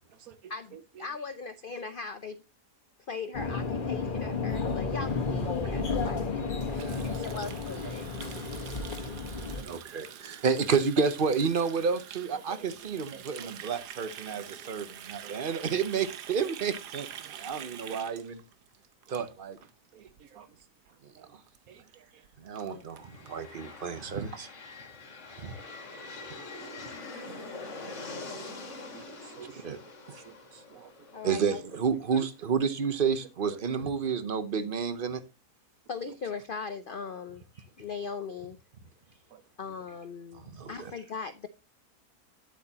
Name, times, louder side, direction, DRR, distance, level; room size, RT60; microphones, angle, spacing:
voice 1, 0.5-2.4 3.1-8.1 22.5-22.9 31.1-31.6 32.1-32.3 35.9-38.6 39.6-41.5, left 5 dB, 75° left, 0.5 m, -40 dB
sound 1, 3.3-9.6, left 4 dB, 35° left, 1.4 m, -32 dB
Water tap faucet, 6.7-19.7 20.0-20.2 20.5-20.9 21.1-21.2 21.5-21.6 21.9-22.0 22.2-23.3, right 10 dB, 85° right, 1.4 m, -46 dB
voice 2, 9.6-18.4 19.1-19.6 21.0-21.4 22.4-24.5 25.4-25.5 29.6-29.8 30.1-30.2 31.2-35.2 40.3-40.9, right 6 dB, 40° right, 0.8 m, -30 dB
voice 3, 13.1-13.5 15.2-15.6 17.9-18.0 19.9-20.1 20.3-20.5 21.2-21.3 21.7-21.8 26.3-26.8 27.1-27.9 28.9-29.0 29.4-29.6 30.2-30.3 30.7-30.9 33.5-33.6 39.3-39.4, right 9 dB, 65° right, 1.3 m, -50 dB
sound 2, 22.9-32.7, left 3 dB, 50° left, 1.9 m, -44 dB
9.9 x 8.2 x 2.9 m
omnidirectional pair, 1.7 m